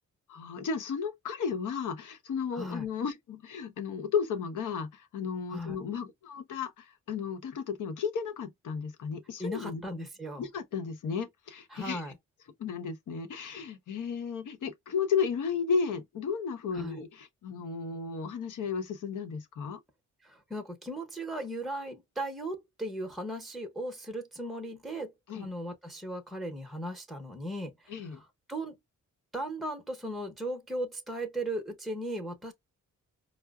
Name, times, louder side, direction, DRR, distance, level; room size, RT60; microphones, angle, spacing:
voice 1, 0.3-9.8 10.4-12.0 12.6-19.8 25.3-25.5 27.9-28.2, left 6 dB, 70° left, 0.8 m, -34 dB
voice 2, 2.5-2.8 5.5-5.8 9.4-10.5 11.7-12.2 16.7-17.0 20.2-28.8 29.3-32.5, right 1 dB, ahead, 0.8 m, -37 dB
4.6 x 2.0 x 2.3 m
cardioid pair, 80°, 31 cm